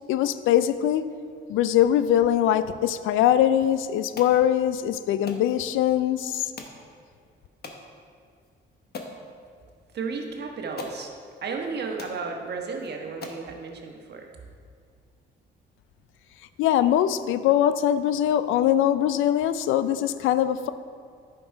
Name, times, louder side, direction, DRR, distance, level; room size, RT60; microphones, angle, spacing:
voice 1, 0.1-1.1 1.5-6.5 16.6-20.7, left 11 dB, 85° left, 13 dB, 0.5 m, -22 dB
sound 1, 4.2-4.4 5.3-5.5 6.6-6.8 7.6-7.8 8.4-8.5 8.9-9.2 10.2-10.3 10.8-11.0 11.7-11.8 12.0-12.2 12.8-12.9 13.2-13.5, left 3 dB, 55° left, 1.1 m, -39 dB
voice 2, 9.9-11.1 11.4-14.3, right 4 dB, 55° right, 2 dB, 1.3 m, -33 dB
10.0 x 5.9 x 4.8 m, 2.1 s
cardioid pair, 90°, 20 cm